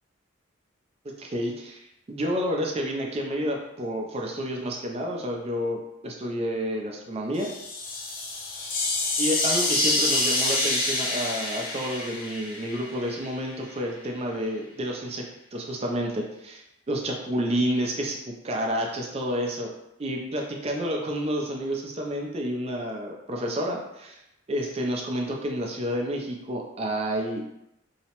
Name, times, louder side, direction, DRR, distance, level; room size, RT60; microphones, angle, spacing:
voice 1, 1.0-1.8 2.1-7.5 9.2-15.2 15.5-16.6 16.9-19.7 20.0-24.2 24.5-27.4, equal, 30° right, 0 dB, 0.4 m, -29 dB
sound 1, 7.3-13.2, left 2 dB, 45° left, 0.5 m, -27 dB
2.7 x 2.0 x 2.9 m, 0.86 s
head